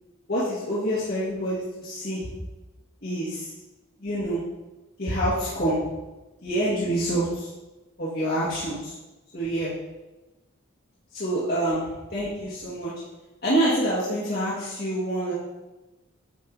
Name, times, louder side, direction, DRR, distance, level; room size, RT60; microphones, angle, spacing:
voice 1, 0.3-2.2 3.0-3.5 4.0-4.4 5.0-5.8 6.4-7.5 8.0-8.9 9.3-9.7 11.1-11.8 12.1-12.9 13.4-15.3, right 1 dB, 50° left, -9 dB, 2.0 m, -26 dB
9.4 x 4.7 x 4.1 m, 1.1 s
head